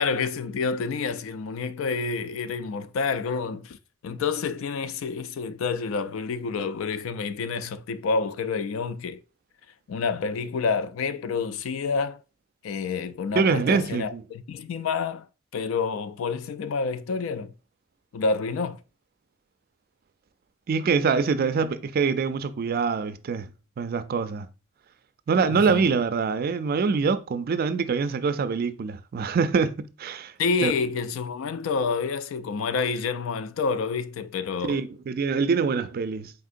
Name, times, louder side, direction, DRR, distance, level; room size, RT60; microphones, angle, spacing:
voice 1, 0.0-3.8 4.0-9.2 9.9-12.2 12.6-15.3 15.5-17.5 18.1-18.8 25.5-25.9 30.4-34.8, left 5 dB, 70° left, 0.3 m, -28 dB
voice 2, 13.4-14.2 20.7-23.5 23.8-24.5 25.3-30.3 30.6-30.7 34.6-36.3, right 5 dB, 45° right, 0.3 m, -24 dB
4.1 x 3.6 x 2.5 m
head